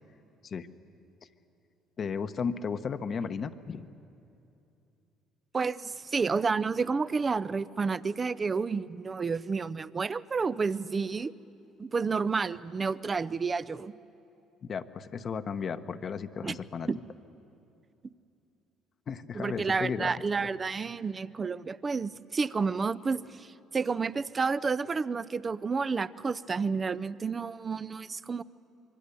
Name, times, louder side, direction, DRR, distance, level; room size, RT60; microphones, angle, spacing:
voice 1, 2.0-3.9 14.6-16.9 19.1-20.1 20.4-20.5, left 6 dB, 45° left, 10 dB, 1.0 m, -34 dB
voice 2, 5.5-11.3 11.8-13.9 16.4-16.6 16.9-17.0 19.3-28.4, right 4 dB, 35° right, 15 dB, 0.6 m, -30 dB
25.5 x 23.5 x 7.0 m, 2.7 s
supercardioid pair, 70°, 0 cm